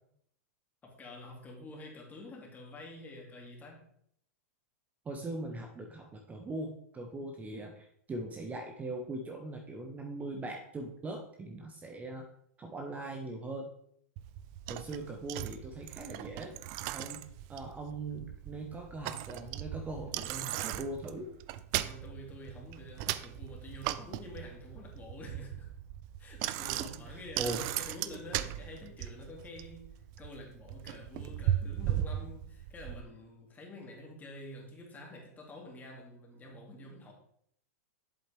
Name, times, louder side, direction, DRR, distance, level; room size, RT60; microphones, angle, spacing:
voice 1, 0.8-3.8 21.8-25.7 26.2-29.9 30.2-37.1, left 1 dB, 20° left, 0 dB, 2.4 m, -48 dB
voice 2, 5.0-12.2 12.6-13.7 14.7-16.6 16.9-21.3 26.8-27.7, right 2 dB, 15° right, 2 dB, 1.0 m, -40 dB
Bicycle, 14.2-33.0, right 13 dB, 45° right, 0.5 m, -38 dB
7.8 x 7.8 x 3.4 m, 0.68 s
hypercardioid pair, 125°, 9 cm